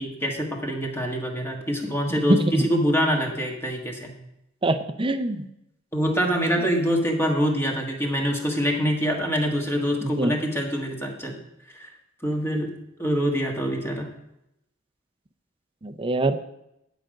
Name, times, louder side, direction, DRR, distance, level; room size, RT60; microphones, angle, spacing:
voice 1, 0.0-4.1 5.9-11.4 11.8-11.9 12.2-12.7 13.0-14.1, equal, 15° left, 1 dB, 1.6 m, -25 dB
voice 2, 2.1-2.6 4.6-5.5 10.0-10.3 15.8-16.4, right 2 dB, 25° right, 10 dB, 0.6 m, -24 dB
10.0 x 5.1 x 7.5 m, 0.83 s
head